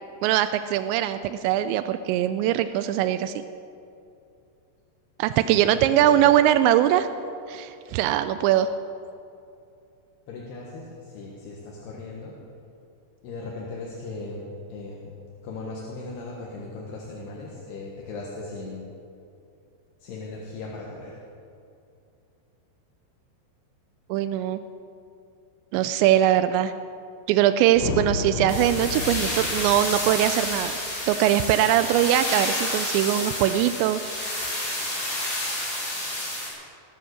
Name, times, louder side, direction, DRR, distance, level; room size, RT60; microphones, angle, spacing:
voice 1, 0.2-3.4 5.2-7.1 7.5-8.7 24.1-24.6 25.7-26.7 27.3-30.8 31.1-34.4, right 12 dB, 85° right, 11 dB, 2.8 m, -21 dB
voice 2, 5.4-6.3 10.3-12.4 13.2-18.9 20.0-21.2, left 3 dB, 70° left, -3 dB, 3.4 m, -38 dB
sound 1, 27.7-32.1, left 4 dB, 90° left, 1.5 m, -33 dB
sound 2, 28.5-36.5, left 1 dB, 20° left, 4.0 m, -30 dB
19.5 x 10.5 x 6.5 m, 2.6 s
omnidirectional pair, 5.1 m